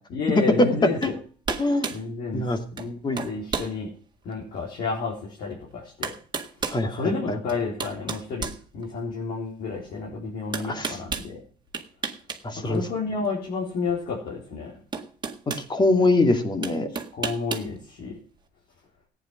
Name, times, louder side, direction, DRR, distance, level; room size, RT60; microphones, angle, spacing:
voice 1, 0.1-1.1 1.9-2.4 2.7-3.9 4.2-6.2 6.8-11.4 12.6-14.7 17.1-18.2, left 4 dB, 65° left, -4 dB, 4.1 m, -31 dB
sound 1, 1.0-1.2 1.4-2.0 2.8-2.9 3.2-3.7 4.3-4.4 5.5-5.6 6.0-6.8 7.5-9.2 10.5-11.3 11.7-12.4 12.7-12.9 14.3-14.4 14.9-15.7 16.6-17.7, right 5 dB, 25° right, 1.8 m, -32 dB
voice 2, 1.6-1.9 2.3-2.6 3.0-3.2 6.7-7.4 10.6-11.0 12.4-12.9 15.7-16.9, left 2 dB, 25° left, 7 dB, 2.5 m, -23 dB
14.5 x 9.5 x 5.9 m, 0.42 s
cardioid pair, 110°, 17 cm